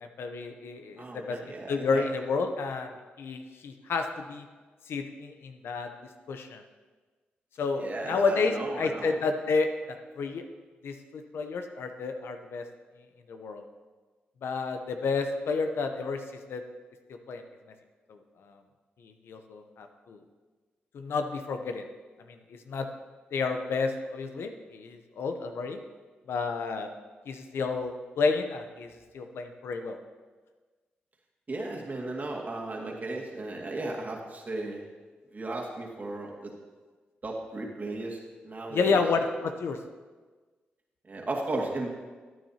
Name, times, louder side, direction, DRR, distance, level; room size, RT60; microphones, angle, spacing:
voice 1, 0.0-1.4 1.7-2.9 3.2-4.5 4.9-5.9 6.3-6.6 7.6-10.4 10.8-12.6 13.3-13.6 14.4-16.2 16.5-16.6 17.3-17.4 18.1-18.6 19.0-20.2 20.9-21.8 22.3-22.9 23.3-25.8 26.3-26.9 27.3-30.0 38.7-39.8, left 4 dB, 75° left, 6 dB, 0.8 m, -30 dB
voice 2, 1.0-2.0 7.8-9.2 31.5-34.8 35.3-36.5 37.2-38.2 38.4-39.0 41.1-41.9, right 2 dB, 45° right, -1 dB, 2.2 m, -35 dB
14.0 x 9.3 x 2.9 m, 1.4 s
supercardioid pair, 45°, 4 cm